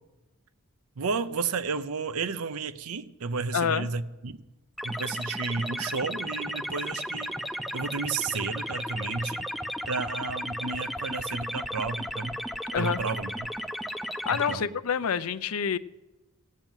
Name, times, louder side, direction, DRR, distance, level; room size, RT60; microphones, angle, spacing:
voice 1, 1.0-4.4 4.8-9.5 9.9-12.4 12.7-13.5 14.5-14.7, right 4 dB, 75° right, 0.6 m, -32 dB
voice 2, 3.5-3.9 12.7-13.0 14.1-15.8, left 7 dB, 75° left, 0.5 m, -27 dB
sound 1, 4.8-14.6, equal, ahead, 0.5 m, -34 dB
16.5 x 7.5 x 9.0 m
head